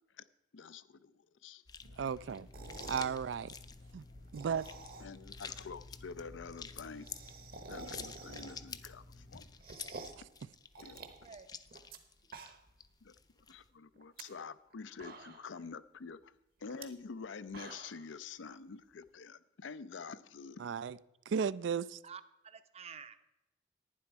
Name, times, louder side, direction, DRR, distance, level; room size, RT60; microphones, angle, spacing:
voice 1, 0.5-1.1 1.4-1.6 5.0-7.1 7.7-9.4 10.8-11.0 13.0-13.1 13.5-16.3 16.6-20.6, left 5 dB, 90° left, 0.5 m, -47 dB
sound 1, 1.7-13.7, left 6 dB, 20° left, 0.4 m, -50 dB
sound 2, 1.8-9.6, left 2 dB, 60° left, 1.2 m, -56 dB
voice 2, 2.0-2.5 2.9-3.5 3.9-4.0 4.3-4.7 20.6-21.0 21.3-22.0, right 6 dB, 75° right, 0.4 m, -34 dB
sound 3, 2.4-3.2 4.2-5.3 5.6-5.7 5.9-6.0 6.2-6.3 6.6-8.8 9.2-10.3 10.7-12.0 12.2-12.8 13.2-13.3 14.0-14.2 14.7-14.8 15.0-15.6 16.7-16.8 17.3-18.1, right 3 dB, 55° right, 1.0 m, -49 dB
voice 3, 22.0-23.2, right 6 dB, 35° right, 0.6 m, -50 dB
11.0 x 9.7 x 4.6 m
head